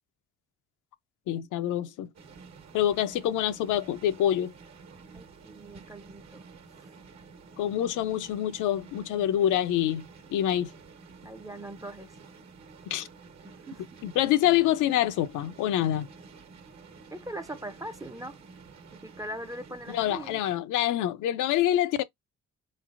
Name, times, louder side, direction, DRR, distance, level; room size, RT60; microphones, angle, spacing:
voice 1, 1.3-2.1 2.7-4.5 7.6-10.0 10.3-10.7 12.9-13.1 14.0-16.1 19.9-22.0, left 12 dB, 85° left, 0.5 m, -26 dB
sound 1, 2.1-20.6, right 4 dB, 60° right, 1.2 m, -50 dB
voice 2, 5.1-6.5 6.8-6.9 11.2-12.2 13.4-14.0 17.1-18.4 18.9-20.4, right 1 dB, 10° right, 0.4 m, -41 dB
4.0 x 3.2 x 2.4 m
cardioid pair, 90°, 30 cm